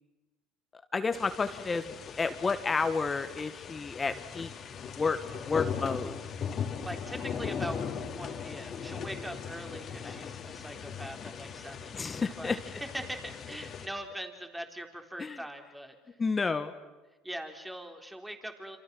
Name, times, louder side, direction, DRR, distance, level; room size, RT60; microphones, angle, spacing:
voice 1, 0.9-4.5 4.9-5.2 5.4-6.1 10.0-10.1 11.9-12.6 15.2-15.4 16.2-16.7, left 4 dB, 25° left, 9 dB, 1.4 m, -30 dB
sound 1, 1.1-13.9, left 7 dB, 45° left, 2.8 m, -39 dB
voice 2, 6.9-12.0 12.4-16.0 17.2-18.8, right 1 dB, 5° right, 4 dB, 3.8 m, -42 dB
27.0 x 26.5 x 6.2 m, 1.2 s
hypercardioid pair, 75°, 0 cm